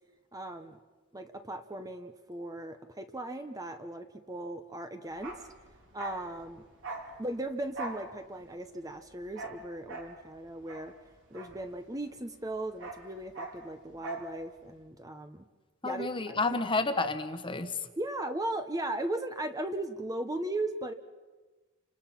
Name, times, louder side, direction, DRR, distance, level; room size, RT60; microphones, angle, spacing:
voice 1, 0.3-0.8 1.1-5.4 5.9-6.6 7.2-10.9 11.3-15.5 15.8-16.4 18.0-20.9, right 1 dB, 15° right, 7 dB, 1.0 m, -37 dB
Bark, 5.1-12.1 12.4-14.3 14.6-14.8, right 2 dB, 60° right, 4.0 m, -43 dB
voice 2, 15.8-17.7, left 3 dB, 25° left, 9 dB, 1.4 m, -30 dB
29.5 x 26.5 x 6.0 m, 1.3 s
head